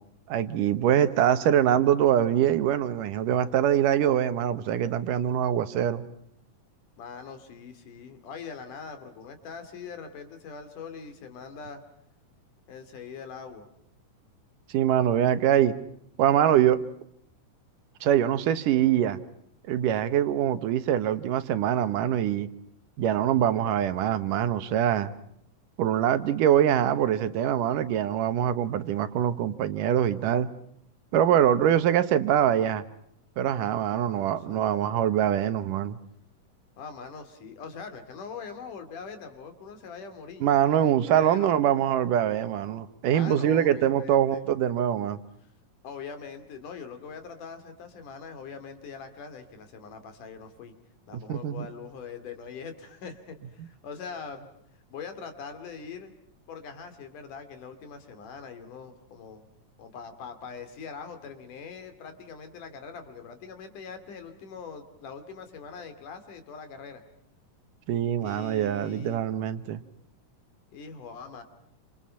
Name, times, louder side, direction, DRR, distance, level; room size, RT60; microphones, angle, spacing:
voice 1, 0.3-6.0 14.7-15.7 16.2-16.8 18.0-19.2 19.7-22.5 23.0-25.1 25.8-30.5 31.1-32.8 33.4-36.0 40.4-45.2 51.3-51.7 67.9-69.8, right 10 dB, 80° right, 12 dB, 2.8 m, -24 dB
voice 2, 7.0-11.8 12.7-13.7 33.8-34.7 36.8-40.6 41.1-41.5 43.1-44.4 45.8-50.8 51.1-54.5 54.9-56.1 56.5-59.4 59.8-67.0 68.2-69.2 70.7-71.4, left 5 dB, 70° left, 8 dB, 4.2 m, -42 dB
29.0 x 27.0 x 5.8 m, 0.71 s
omnidirectional pair, 3.8 m